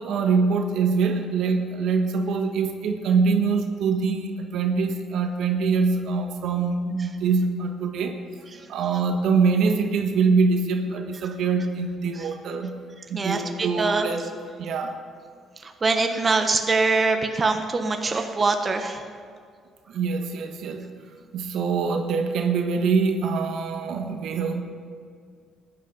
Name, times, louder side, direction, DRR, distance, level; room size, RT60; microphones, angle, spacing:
voice 1, 0.0-8.2 8.7-12.7 13.1-14.3 14.6-14.9 19.9-20.9 21.3-24.6, right 5 dB, 75° right, 4 dB, 1.3 m, -24 dB
voice 2, 13.1-14.1 15.8-19.0, right 3 dB, 30° right, 5 dB, 1.1 m, -23 dB
16.0 x 10.5 x 5.2 m, 2.1 s
cardioid pair, 95°, 0 cm